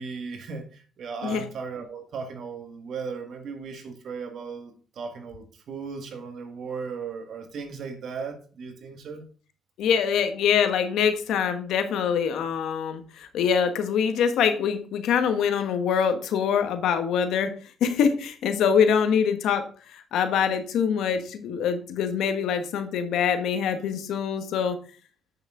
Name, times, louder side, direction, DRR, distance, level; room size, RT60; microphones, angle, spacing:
voice 1, 0.0-9.2, right 5 dB, 65° right, 6 dB, 1.8 m, -36 dB
voice 2, 9.8-17.5 17.8-24.8, left 7 dB, 80° left, 8 dB, 1.3 m, -24 dB
8.1 x 6.5 x 3.8 m, 0.39 s
cardioid pair, 90°, 0 cm